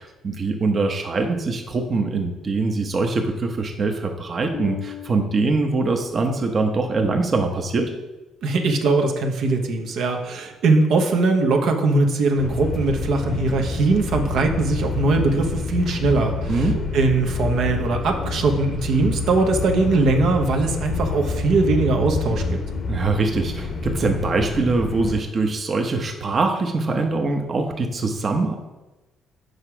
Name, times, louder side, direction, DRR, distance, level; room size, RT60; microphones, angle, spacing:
voice 1, 0.0-7.9 16.5-16.9 22.9-28.6, right 3 dB, 40° right, 4 dB, 0.8 m, -23 dB
Bass guitar, 4.5-7.0, left 13 dB, 60° left, 0.3 m, -39 dB
voice 2, 8.4-16.7 16.9-22.6, right 3 dB, 70° right, 3 dB, 0.9 m, -20 dB
sound 1, 12.4-25.2, left 4 dB, 45° left, 0.8 m, -28 dB
6.6 x 4.9 x 4.5 m, 1.1 s
cardioid pair, 90°, 0 cm